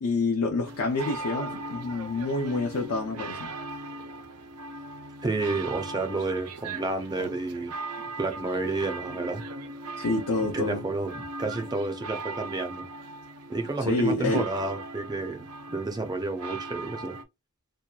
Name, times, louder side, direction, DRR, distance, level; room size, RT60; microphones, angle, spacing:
voice 1, 0.0-3.5 10.0-10.8 13.8-14.4, left 3 dB, 80° left, 0.6 m, -27 dB
sound 1, 0.6-17.2, right 2 dB, 85° right, 0.5 m, -39 dB
voice 2, 5.2-7.7 8.2-9.4 10.5-12.8 13.5-17.2, right 3 dB, 20° right, 0.4 m, -30 dB
2.7 x 2.2 x 2.3 m
head